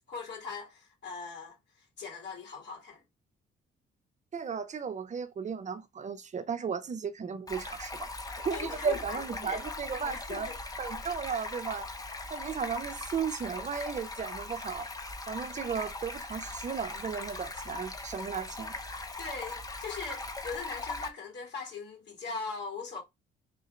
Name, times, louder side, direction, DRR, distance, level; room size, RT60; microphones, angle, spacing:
voice 1, 0.1-3.0 8.3-9.6 10.0-10.6 19.2-23.0, left 4 dB, 60° left, 2.5 m, -40 dB
voice 2, 4.3-8.1 8.4-10.5 10.8-11.9 12.3-14.9 15.3-18.7, right 6 dB, 35° right, 0.5 m, -35 dB
Stream, 7.5-21.1, left 2 dB, 20° left, 0.8 m, -40 dB
3.7 x 2.6 x 4.2 m
cardioid pair, 90°, 20 cm